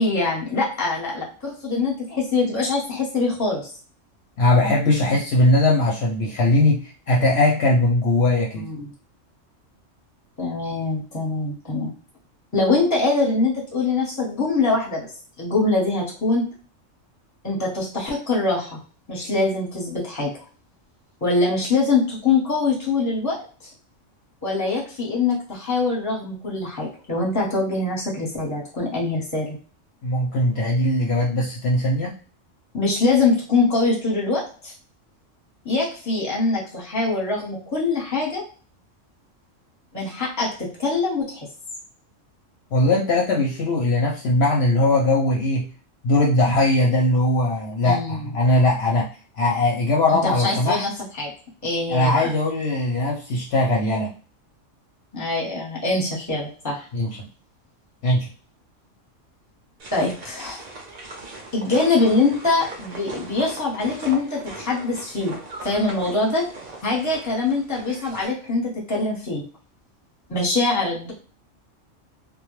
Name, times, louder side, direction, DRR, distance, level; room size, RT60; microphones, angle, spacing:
voice 1, 0.0-3.7 8.5-8.9 10.4-11.9 12.5-15.1 15.4-16.5 17.4-18.8 19.1-20.3 21.2-23.7 24.4-29.6 32.7-34.7 35.6-38.4 39.9-41.5 47.8-48.3 50.1-50.9 51.2-51.3 51.6-52.3 55.1-56.9 59.9-60.6 61.5-66.5 66.8-69.4 70.3-71.1, left 3 dB, 15° left, -3 dB, 0.8 m, -23 dB
voice 2, 4.4-8.7 30.0-32.1 42.7-45.7 46.0-49.1 49.3-50.8 51.9-54.1 56.9-57.2 58.0-58.3 68.2-68.3, left 2 dB, 65° left, -2 dB, 0.7 m, -20 dB
sound 1, 59.8-68.3, right 2 dB, 55° right, 0.5 m, -40 dB
2.2 x 2.0 x 3.0 m, 0.38 s
omnidirectional pair, 1.3 m